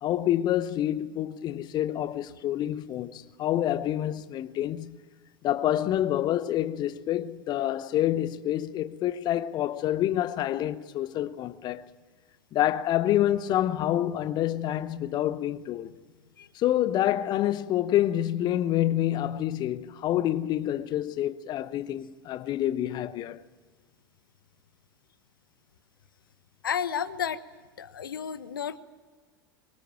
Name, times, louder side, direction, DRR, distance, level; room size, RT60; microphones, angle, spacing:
voice 1, 0.0-5.0 5.4-11.9 12.5-15.9 16.5-23.4, left 12 dB, 40° left, 1.0 m, -27 dB
voice 2, 26.6-27.4 27.8-28.8, left 8 dB, 70° left, 1.2 m, -31 dB
24.0 x 22.5 x 8.9 m
figure-of-eight pair, 80°, 12 cm